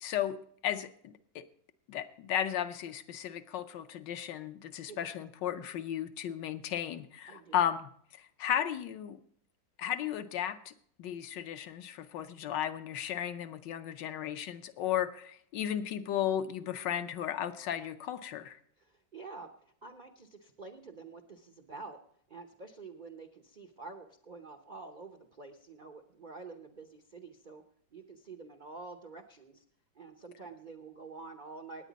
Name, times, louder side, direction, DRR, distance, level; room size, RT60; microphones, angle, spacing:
voice 1, 0.0-0.4 0.6-1.4 1.9-9.2 9.8-10.7 11.0-18.6, left 10 dB, 75° left, 10 dB, 1.3 m, -35 dB
voice 2, 7.3-7.6 18.8-19.5 19.8-22.0 22.3-27.6 27.9-29.6 29.9-31.9, right 4 dB, 65° right, 5 dB, 0.4 m, -48 dB
17.5 x 9.1 x 4.0 m, 0.62 s
omnidirectional pair, 2.1 m